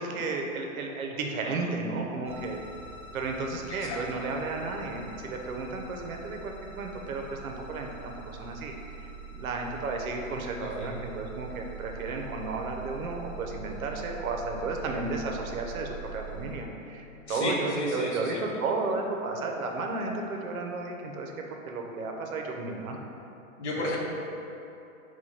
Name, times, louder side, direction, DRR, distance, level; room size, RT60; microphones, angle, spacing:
voice 1, 0.0-2.6 3.1-21.3 21.7-23.0 23.6-23.7, right 3 dB, 80° right, 2 dB, 0.7 m, -33 dB
sound 1, 2.2-16.5, right 5 dB, ahead, 1.1 m, -43 dB
voice 2, 10.6-10.9 17.3-18.6 23.6-24.0, left 1 dB, 55° left, -3 dB, 0.8 m, -32 dB
4.2 x 2.3 x 4.5 m, 2.9 s
hypercardioid pair, 170°, 42 cm